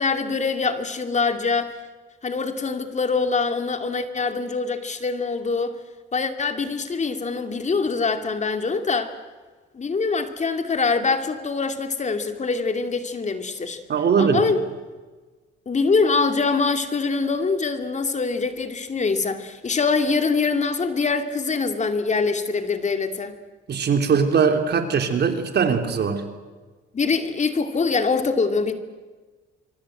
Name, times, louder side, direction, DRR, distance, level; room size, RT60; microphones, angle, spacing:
voice 1, 0.0-1.8 2.2-5.7 6.1-9.2 9.7-13.8 14.2-14.7 15.7-23.3 26.9-28.7, left 4 dB, 35° left, 8 dB, 2.6 m, -24 dB
voice 2, 13.9-14.4 23.7-26.2, right 6 dB, 55° right, 6 dB, 3.4 m, -20 dB
26.0 x 24.0 x 8.0 m, 1.3 s
cardioid pair, 90°, 20 cm